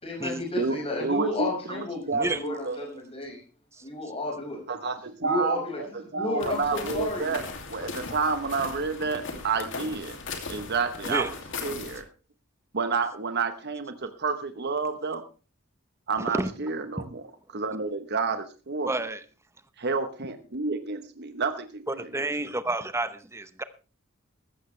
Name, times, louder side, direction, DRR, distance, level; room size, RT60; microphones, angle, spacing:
voice 1, 0.0-3.4 3.8-4.6 5.2-5.8 6.1-7.4, left 2 dB, 30° left, 5.6 m, -32 dB
voice 2, 0.6-2.8 4.7-7.4 7.7-10.2 10.5-11.4 11.6-12.0 12.7-15.2 16.1-17.2 17.5-18.9 19.8-22.1, right 4 dB, 50° right, 1.1 m, -30 dB
voice 3, 2.1-2.4 3.7-3.8 11.1-11.3 16.3-16.5 17.0-17.1 18.8-19.2 21.9-23.6, right 2 dB, 15° right, 0.9 m, -30 dB
sound 1, 6.4-12.0, left 4 dB, 60° left, 2.6 m, -38 dB
15.5 x 13.0 x 3.3 m
head